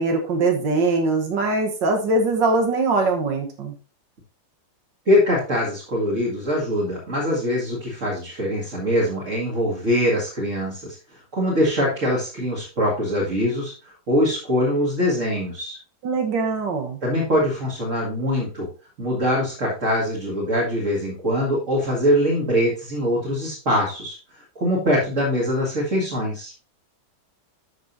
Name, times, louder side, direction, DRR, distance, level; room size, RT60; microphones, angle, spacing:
voice 1, 0.0-3.7 16.0-17.0, right 3 dB, 85° right, 3 dB, 2.0 m, -22 dB
voice 2, 5.1-15.8 17.0-18.7 19.0-24.1 24.6-26.5, equal, 45° right, -5 dB, 2.4 m, -23 dB
12.5 x 5.4 x 2.7 m, 0.34 s
omnidirectional pair, 1.9 m